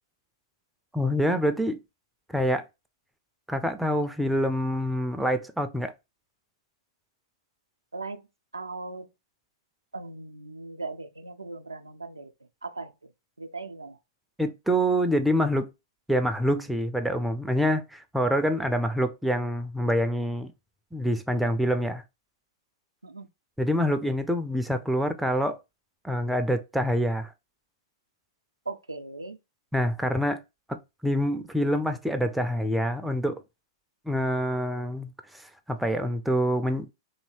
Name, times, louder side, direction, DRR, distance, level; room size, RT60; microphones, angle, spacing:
voice 1, 0.9-1.8 2.3-2.6 3.5-5.9 14.4-15.7 16.1-20.5 20.9-22.0 23.6-25.6 26.0-27.3 29.7-30.4 30.7-30.8 31.0-33.4 34.1-35.1 35.7-36.9, equal, ahead, 0.4 m, -26 dB
voice 2, 7.9-8.3 8.5-9.1 9.9-12.3 12.6-12.9 13.4-14.0 23.0-23.3 28.7-29.4, right 3 dB, 90° right, 0.4 m, -38 dB
2.7 x 2.7 x 3.0 m
figure-of-eight pair, 110°, 2 cm